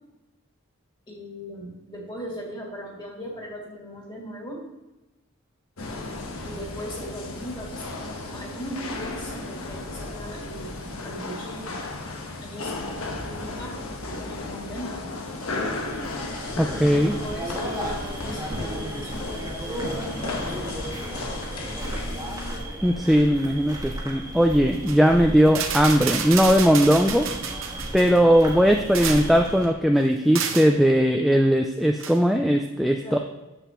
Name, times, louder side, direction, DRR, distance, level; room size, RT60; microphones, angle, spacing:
voice 1, 1.1-4.6 6.4-11.8 12.4-13.8 14.1-15.1 16.9-20.6 21.6-22.0 33.0-33.2, equal, 20° left, -2 dB, 2.3 m, -38 dB
sound 1, 5.8-22.6, left 2 dB, 70° left, 1.2 m, -34 dB
sound 2, 15.8-29.7, right 1 dB, 15° right, 1.4 m, -35 dB
voice 2, 16.6-17.1 22.8-27.3 27.9-33.2, equal, ahead, 3 dB, 0.3 m, -19 dB
sound 3, 24.7-25.0 25.5-28.2 28.7-29.4 30.4-30.7 32.0-32.2, right 7 dB, 60° right, 0.9 m, -30 dB
10.0 x 7.9 x 3.0 m, 1.0 s
head